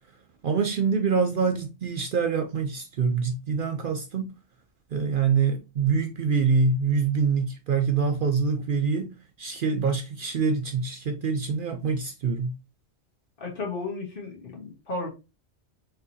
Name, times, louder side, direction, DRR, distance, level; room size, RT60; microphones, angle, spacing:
voice 1, 0.4-4.3 4.9-12.6, right 5 dB, 60° right, 0.6 m, -25 dB
voice 2, 13.4-15.1, left 3 dB, 50° left, 1.5 m, -34 dB
4.4 x 3.6 x 2.7 m
omnidirectional pair, 1.2 m